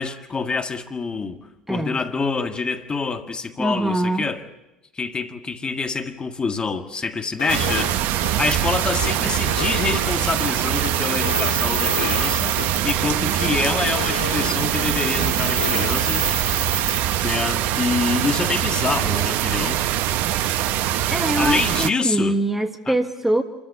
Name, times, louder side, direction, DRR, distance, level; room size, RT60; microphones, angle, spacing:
voice 1, 0.0-4.4 5.0-8.0 8.4-12.6 12.8-16.4 17.2-19.8 21.4-22.4 22.9-23.0, left 4 dB, 25° left, 7 dB, 1.8 m, -26 dB
voice 2, 1.7-2.0 3.6-4.3 21.1-23.4, right 1 dB, 5° right, 7 dB, 1.4 m, -23 dB
sound 1, 7.4-7.9 8.2-8.3 8.6-10.5 10.8-12.3 12.6-12.7 13.0-14.8 15.2-16.0, left 5 dB, 80° left, 2.2 m, -32 dB
sound 2, 7.5-21.9, right 12 dB, 55° right, 0.9 m, -23 dB
sound 3, 10.4-13.0 13.3-13.5 14.1-17.2, right 4 dB, 30° right, 2.6 m, -29 dB
27.0 x 14.0 x 8.5 m, 0.96 s
hypercardioid pair, 75°, 4 cm